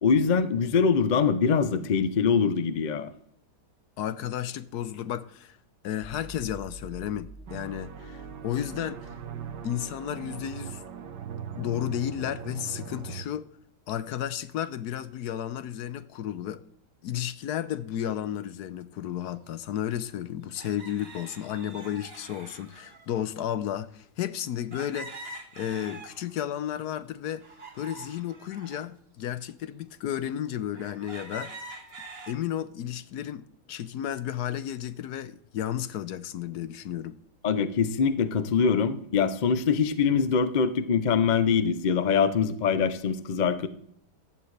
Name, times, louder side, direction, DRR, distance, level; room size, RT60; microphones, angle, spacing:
voice 1, 0.0-3.1 37.4-43.7, left 6 dB, 50° left, 0.5 m, -23 dB
voice 2, 4.0-5.6 5.8-9.1 9.6-10.8 11.6-13.5 13.9-16.6 17.0-25.3 25.6-27.4 27.8-31.7 32.3-37.2, left 10 dB, 75° left, 1.2 m, -33 dB
sound 1, 6.0-12.0, right 2 dB, 25° left, 2.9 m, -49 dB
sound 2, 7.5-13.2, right 7 dB, 90° right, 1.6 m, -40 dB
sound 3, 19.4-19.5 20.6-23.3 24.7-26.5 26.9-28.9 29.5-29.6 30.2-30.3 30.7-32.3, right 2 dB, 40° right, 1.6 m, -45 dB
14.5 x 11.0 x 3.3 m
omnidirectional pair, 1.8 m